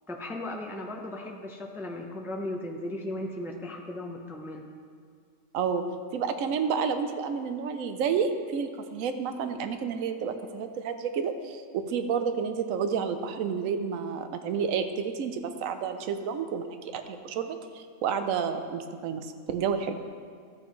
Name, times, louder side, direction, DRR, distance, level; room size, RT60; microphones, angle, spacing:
voice 1, 0.1-4.6, left 1 dB, 5° right, 1 dB, 0.4 m, -36 dB
voice 2, 6.1-16.7 16.9-19.9, right 6 dB, 70° right, 8 dB, 1.0 m, -30 dB
13.5 x 8.6 x 3.1 m, 2.1 s
omnidirectional pair, 1.5 m